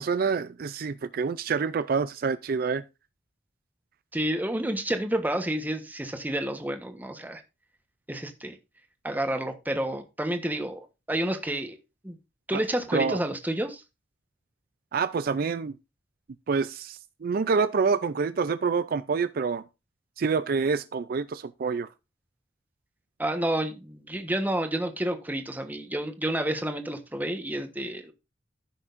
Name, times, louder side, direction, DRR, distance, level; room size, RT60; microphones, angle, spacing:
voice 1, 0.0-2.8 12.5-12.6 12.9-13.2 14.9-15.7 16.5-19.6 20.2-21.9, right 5 dB, 55° right, 0.4 m, -27 dB
voice 2, 4.1-7.4 8.1-8.5 9.0-10.8 11.1-11.8 12.0-12.2 12.5-13.8 23.2-28.1, right 1 dB, 10° right, 1.1 m, -29 dB
15.0 x 6.2 x 2.5 m
head